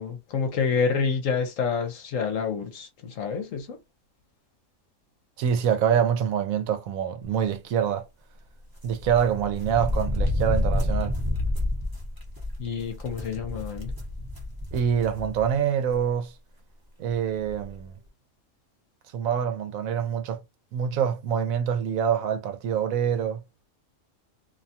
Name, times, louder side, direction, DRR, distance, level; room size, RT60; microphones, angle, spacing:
voice 1, 0.0-3.8 12.6-13.9, left 5 dB, 70° left, 1.1 m, -28 dB
voice 2, 5.4-8.1 8.8-11.2 14.7-16.3 17.0-17.9 19.1-20.4 20.7-23.4, right 8 dB, 80° right, 1.1 m, -25 dB
sound 1, 8.8-15.5 15.9-16.0 17.1-17.2 17.4-17.7, left 1 dB, 20° right, 0.8 m, -29 dB
2.7 x 2.3 x 2.7 m
omnidirectional pair, 1.5 m